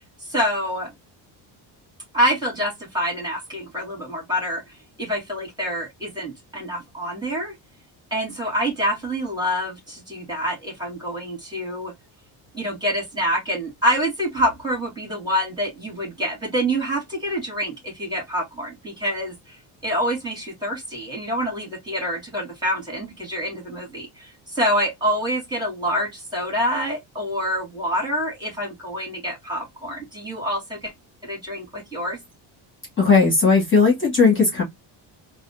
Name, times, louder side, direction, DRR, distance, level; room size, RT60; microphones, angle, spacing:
voice 1, 0.2-0.9 2.1-4.6 5.0-7.5 8.1-11.9 12.5-19.6 19.8-30.9 31.2-32.2, equal, 10° right, 2.4 m, -26 dB
voice 2, 33.0-34.6, left 4 dB, 25° left, 1.9 m, -17 dB
4.0 x 2.2 x 2.7 m
cardioid pair, 135°, 44 cm